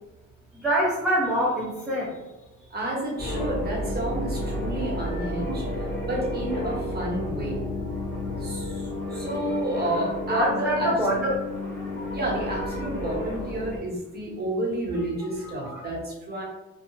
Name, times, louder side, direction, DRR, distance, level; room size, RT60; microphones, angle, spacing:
voice 1, 0.5-2.2 10.3-11.4 15.7-15.8, right 1 dB, ahead, -7 dB, 0.6 m, -24 dB
voice 2, 2.7-7.6 8.4-11.2 12.1-16.4, right 1 dB, 30° right, -3 dB, 1.0 m, -30 dB
sound 1, 3.2-13.8, left 1 dB, 35° left, 0.9 m, -31 dB
2.7 x 2.2 x 2.7 m, 1.0 s
cardioid pair, 90°, 30 cm